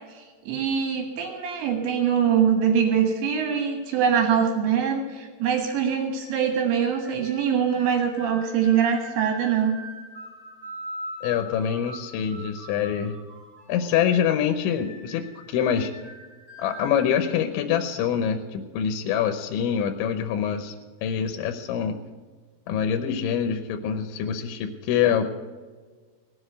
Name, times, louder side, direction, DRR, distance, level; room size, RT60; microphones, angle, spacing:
voice 1, 0.0-9.8, right 7 dB, 75° right, 4 dB, 3.9 m, -23 dB
sound 1, 5.7-17.3, equal, 15° right, 5.6 m, -43 dB
voice 2, 11.2-13.2 13.7-15.9 16.6-20.7 21.0-22.0 22.7-25.3, left 8 dB, 90° left, 6 dB, 3.3 m, -25 dB
18.5 x 8.0 x 7.9 m, 1.5 s
omnidirectional pair, 5.2 m